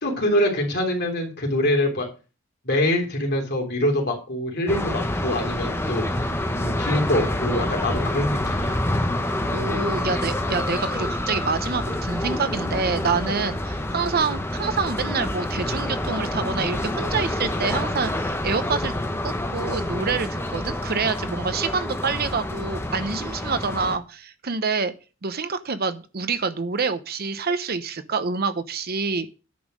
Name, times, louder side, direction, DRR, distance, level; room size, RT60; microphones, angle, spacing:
voice 1, 0.0-2.1 2.6-6.2 6.5-8.8, left 1 dB, 55° left, 2 dB, 3.4 m, -24 dB
sound 1, 4.7-24.0, left 1 dB, 10° left, 1.0 m, -27 dB
voice 2, 9.5-18.9 19.2-24.9 25.2-29.3, right 5 dB, 50° right, 11 dB, 0.8 m, -27 dB
10.0 x 5.5 x 6.3 m, 0.33 s
head